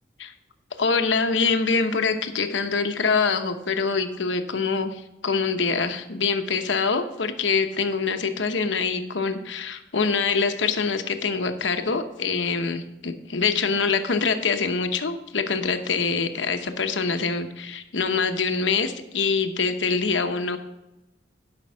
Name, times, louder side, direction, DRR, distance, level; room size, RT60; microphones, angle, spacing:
voice 1, 0.8-20.6, left 5 dB, 90° left, 7 dB, 0.9 m, -25 dB
12.0 x 5.3 x 5.6 m, 0.97 s
head